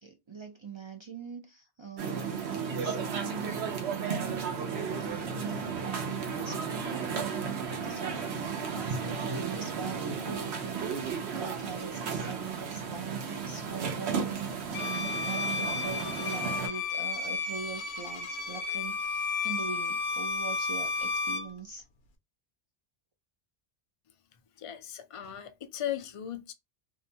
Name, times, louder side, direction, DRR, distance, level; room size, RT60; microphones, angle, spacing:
voice 1, 0.0-3.6 4.0-4.6 5.0-21.8, right 5 dB, 45° right, 0.3 m, -42 dB
sound 1, 2.0-16.7, right 6 dB, 85° right, 0.9 m, -34 dB
Bowed string instrument, 14.7-21.5, left 4 dB, 85° left, 0.9 m, -32 dB
voice 2, 24.6-26.5, left 11 dB, 55° left, 0.3 m, -37 dB
2.7 x 2.1 x 2.7 m
omnidirectional pair, 1.1 m